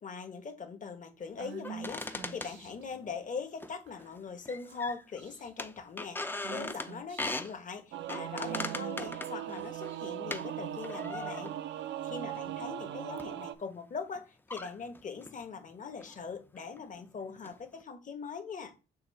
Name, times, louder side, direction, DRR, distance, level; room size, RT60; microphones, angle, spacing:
voice 1, 0.0-11.5 12.0-18.7, left 5 dB, 40° left, 1.1 m, -41 dB
Female speech woman speaking / Whispering, 1.4-2.8 3.9-4.3 4.7-4.9 5.2-5.7 6.4-7.5 8.4-10.4, right 7 dB, 90° right, 1.6 m, -47 dB
sound 1, 1.6-3.1 3.6-4.2 4.4-5.2 5.6-7.5 8.1-10.5 10.8-11.7 12.3-12.5 13.2-13.3 14.1-14.2 14.5-15.4 16.0-16.2 16.5-17.0 17.4-17.8, left 2 dB, 10° left, 0.5 m, -40 dB
Singing / Musical instrument, 7.9-13.6, right 12 dB, 70° right, 0.5 m, -39 dB
6.9 x 2.5 x 5.5 m
cardioid pair, 90°, 20 cm